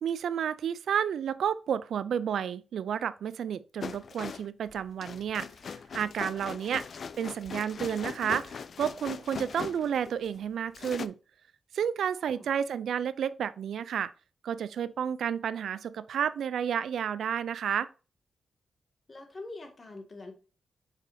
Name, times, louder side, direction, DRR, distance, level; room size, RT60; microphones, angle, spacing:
voice 1, 0.0-11.1 11.7-14.1 14.4-17.9, right 8 dB, 80° right, 0.4 m, -31 dB
sound 1, 3.8-10.4 10.7-11.1, left 6 dB, 65° left, 0.3 m, -40 dB
voice 2, 12.2-12.5 19.1-20.3, left 2 dB, 45° left, 2.0 m, -45 dB
7.3 x 5.1 x 2.6 m
supercardioid pair, 45°, 0 cm